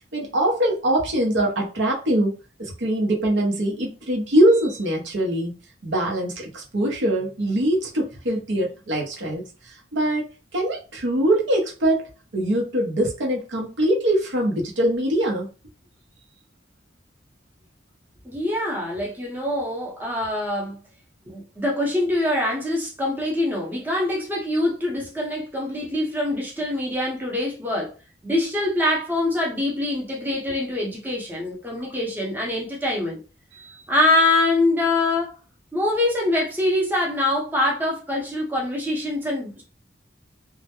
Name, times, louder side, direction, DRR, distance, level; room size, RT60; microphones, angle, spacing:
voice 1, 0.1-2.3 2.6-5.5 5.8-10.3 10.5-12.1 12.3-15.5 33.6-33.7, right 1 dB, 90° right, 0.8 m, -23 dB
voice 2, 18.2-20.8 21.3-27.9 28.2-33.2 33.9-35.3 35.7-39.6, left 1 dB, 10° right, 0.6 m, -24 dB
2.2 x 2.1 x 2.9 m
head